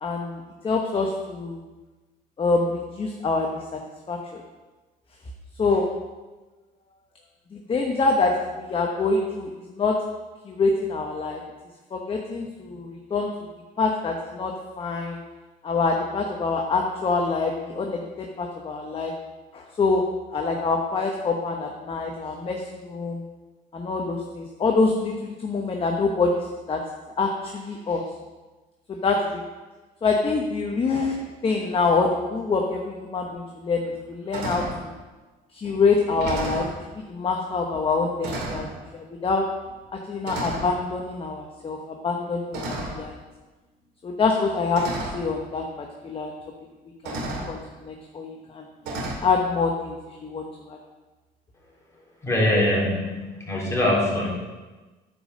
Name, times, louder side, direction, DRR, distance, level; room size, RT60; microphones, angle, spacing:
voice 1, 0.0-1.6 2.4-3.8 4.1-4.4 5.6-5.9 7.5-10.0 10.4-11.4 11.9-13.3 13.8-15.2 15.6-19.1 19.5-20.0 20.3-23.2 23.7-26.4 26.7-26.8 27.2-28.0 28.9-29.4 30.0-31.2 31.4-34.9 35.5-36.7 37.0-38.7 38.9-39.5 40.1-43.1 44.0-44.8 45.1-46.3 47.0-48.7 49.2-50.0 50.2-50.8, left 4 dB, 30° left, 1 dB, 1.0 m, -25 dB
sound 1, 33.2-33.3 33.8-34.0 34.3-34.8 35.6-35.7 36.1-36.7 37.7-37.9 38.2-38.7 39.6-39.9 40.2-40.7 42.5-43.1 44.2-44.3 44.7-45.2 46.4-46.5 47.0-47.5 48.8-49.2, right 2 dB, 85° right, 2.2 m, -32 dB
voice 2, 52.2-54.3, left 1 dB, 15° left, -5 dB, 3.5 m, -23 dB
9.7 x 5.3 x 6.4 m, 1.2 s
cardioid pair, 110°, 17 cm